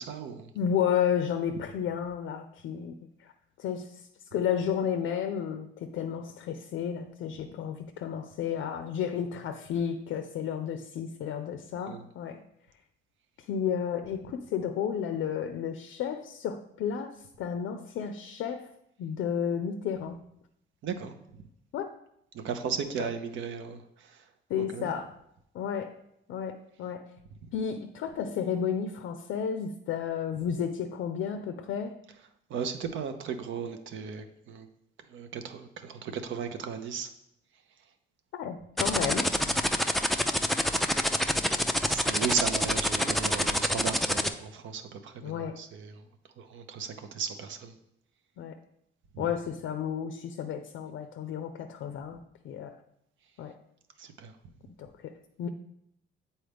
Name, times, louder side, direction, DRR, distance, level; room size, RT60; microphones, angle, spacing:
voice 1, 0.0-0.5 11.9-12.0 20.8-21.1 22.3-23.8 24.6-24.9 32.5-34.7 35.1-37.1 41.9-45.9 46.4-47.7 54.0-54.3, right 6 dB, 75° right, 8 dB, 0.7 m, -35 dB
voice 2, 0.5-3.0 3.6-4.0 4.3-12.4 13.5-18.7 19.0-20.2 21.7-21.9 23.0-23.1 24.5-25.1 25.5-26.0 26.3-27.1 27.5-32.0 38.3-39.3 45.2-45.6 48.4-48.6 49.2-52.2 52.4-52.8 53.4-53.6 54.8-55.5, left 8 dB, 75° left, 7 dB, 0.4 m, -32 dB
sound 1, 38.8-44.3, equal, ahead, 0.3 m, -26 dB
7.8 x 4.2 x 3.4 m, 0.78 s
cardioid pair, 90°, 20 cm